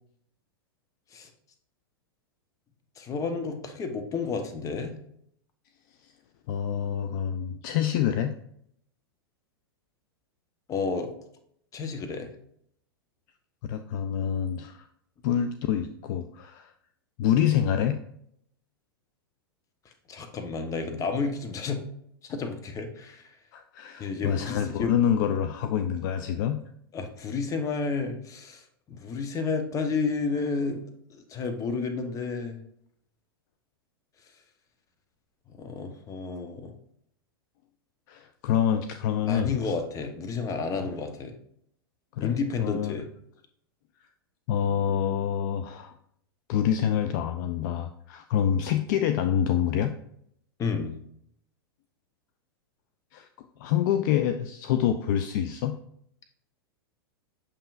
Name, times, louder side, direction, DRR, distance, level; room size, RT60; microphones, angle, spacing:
voice 1, 3.0-4.9 10.7-11.1 11.7-12.3 20.1-21.8 22.2-23.3 24.0-25.0 26.9-32.6 35.5-36.7 39.3-41.3 42.2-43.1 50.6-50.9, left 4 dB, 25° left, 6 dB, 1.0 m, -31 dB
voice 2, 6.5-8.3 13.6-14.8 15.2-16.7 17.2-18.0 23.5-26.6 38.1-39.7 42.2-43.0 44.5-45.9 46.5-49.9 53.1-53.3 53.6-55.8, left 9 dB, 50° left, 8 dB, 0.5 m, -26 dB
6.7 x 5.7 x 2.5 m, 0.69 s
hypercardioid pair, 100°, 13 cm